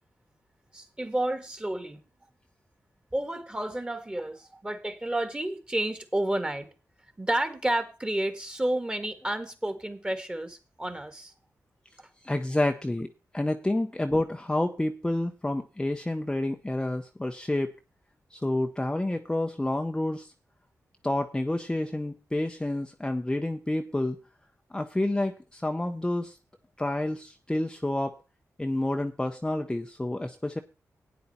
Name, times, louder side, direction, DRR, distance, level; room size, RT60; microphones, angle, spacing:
voice 1, 0.7-2.0 3.1-6.7 7.2-11.3 12.0-12.1, right 1 dB, 15° right, 8 dB, 1.9 m, -30 dB
voice 2, 12.2-13.1 13.3-17.7 18.3-20.3 21.0-24.2 24.7-26.4 26.8-28.1 28.6-30.6, left 1 dB, 15° left, 5 dB, 0.8 m, -29 dB
12.5 x 9.4 x 4.3 m, 0.32 s
wide cardioid pair, 90°, 6 cm